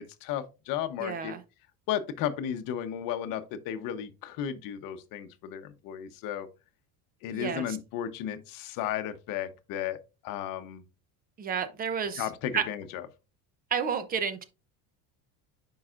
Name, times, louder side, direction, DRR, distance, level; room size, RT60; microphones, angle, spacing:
voice 1, 0.0-1.4 1.9-6.5 7.2-10.0 10.2-10.8 12.2-13.0, left 10 dB, 55° left, 0.9 m, -34 dB
voice 2, 1.0-1.4 7.3-7.6 11.4-12.3 12.5-12.6 13.7-14.4, right 7 dB, 20° right, 0.6 m, -30 dB
9.3 x 4.8 x 2.5 m
cardioid pair, 160°, 40 cm